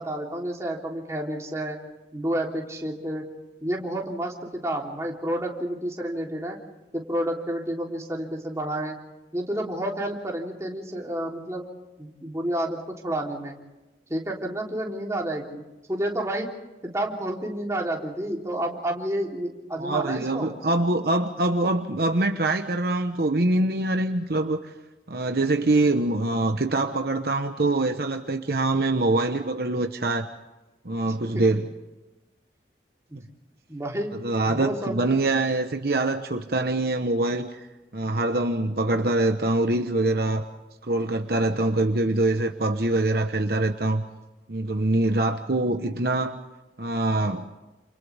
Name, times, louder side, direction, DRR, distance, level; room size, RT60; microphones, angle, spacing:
voice 1, 0.0-1.8 2.1-3.2 3.6-6.6 6.9-9.0 9.3-11.7 12.0-13.5 14.1-15.6 15.9-16.5 16.8-20.5 33.1-33.2 33.7-34.1 34.4-35.0, right 1 dB, 15° right, -1 dB, 3.4 m, -30 dB
voice 2, 19.8-24.7 25.1-30.3 30.8-31.7 34.2-37.7 37.9-40.5 40.8-44.0 44.5-46.4 46.8-47.5, right 2 dB, 60° right, 6 dB, 1.1 m, -24 dB
29.0 x 28.5 x 3.5 m, 1.1 s
head